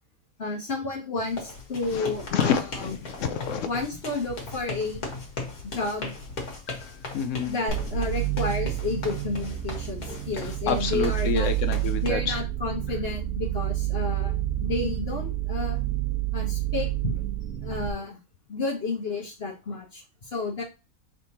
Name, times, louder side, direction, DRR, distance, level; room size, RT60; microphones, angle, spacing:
voice 1, 0.4-2.9 3.7-5.0 5.7-6.1 7.5-11.5 12.0-15.8 16.3-17.2 17.6-18.2 18.5-20.6, left 3 dB, 45° left, 0 dB, 1.3 m, -31 dB
sound 1, 1.3-12.1, left 3 dB, 85° left, 1.8 m, -38 dB
voice 2, 1.9-3.7 6.7-7.5 10.4-12.4, left 6 dB, 65° left, 9 dB, 0.8 m, -29 dB
sound 2, 7.7-17.9, right 14 dB, 75° right, 1.2 m, -29 dB
5.0 x 3.4 x 2.7 m, 0.28 s
omnidirectional pair, 1.5 m